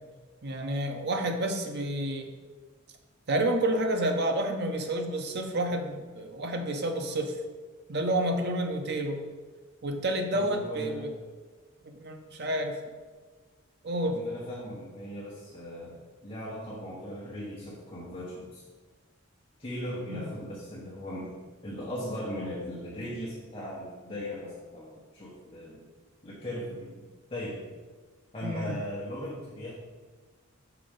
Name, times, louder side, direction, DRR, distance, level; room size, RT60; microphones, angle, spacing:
voice 1, 0.4-2.3 3.3-7.4 7.9-9.2 9.8-11.1 11.8-12.8 13.8-14.2 20.1-20.3 28.4-28.8, right 1 dB, 55° right, 4 dB, 0.8 m, -29 dB
voice 2, 10.3-11.1 14.1-18.6 19.6-21.3 21.6-25.9 26.2-27.0 27.3-27.6 28.3-29.8, equal, 30° left, -7 dB, 1.3 m, -38 dB
5.9 x 4.3 x 5.2 m, 1.4 s
head